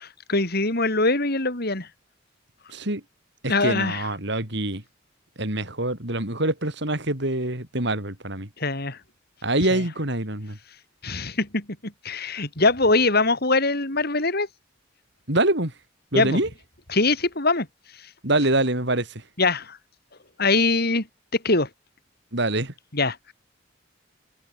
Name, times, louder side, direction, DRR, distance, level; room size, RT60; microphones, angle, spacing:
voice 1, 0.3-1.9 3.5-4.1 8.6-9.0 9.7-9.8 11.0-14.5 16.1-16.4 16.9-17.7 19.4-19.8 20.4-21.1 21.4-21.7 22.9-23.3, left 3 dB, 55° left, 5.1 m, -22 dB
voice 2, 2.7-3.0 3.4-4.8 5.4-8.5 9.4-10.6 15.3-15.7 16.1-16.5 18.2-19.2 22.3-22.7, right 1 dB, 60° right, 5.9 m, -25 dB
head